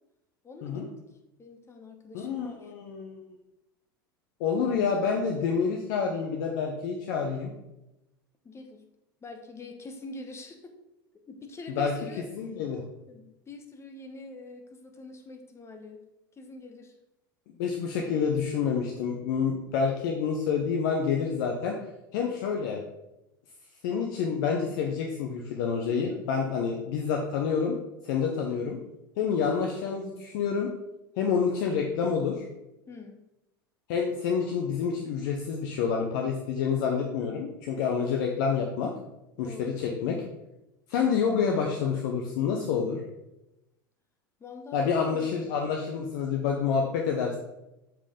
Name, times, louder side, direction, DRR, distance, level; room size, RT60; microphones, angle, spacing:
voice 1, 0.4-0.9 1.4-2.7 8.4-8.9 9.2-10.7 11.3-12.2 13.1-16.0 16.4-16.9 32.9-33.2 39.4-39.9 44.4-45.3, left 3 dB, 25° left, 5 dB, 1.1 m, -44 dB
voice 2, 2.1-3.3 4.4-7.5 11.8-11.9 12.4-12.8 17.6-21.8 22.1-22.8 23.8-27.8 28.0-28.8 29.2-30.7 31.2-32.4 33.9-38.9 39.4-40.2 40.9-43.0 44.7-47.4, left 6 dB, 60° left, 1 dB, 0.9 m, -28 dB
7.1 x 4.6 x 3.8 m, 0.92 s
hypercardioid pair, 80°, 12 cm